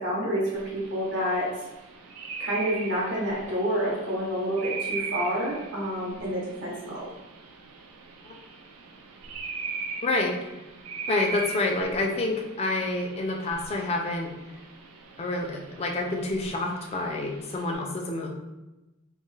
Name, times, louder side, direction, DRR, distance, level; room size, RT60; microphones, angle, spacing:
voice 1, 0.0-1.5 2.4-7.1, equal, 55° right, -6 dB, 0.8 m, -28 dB
sound 1, 0.6-17.7, right 5 dB, 85° right, 0.4 m, -40 dB
voice 2, 10.0-10.3 11.1-14.3 15.2-18.3, left 2 dB, 30° left, 1 dB, 0.3 m, -28 dB
2.6 x 2.2 x 3.0 m, 1.0 s
head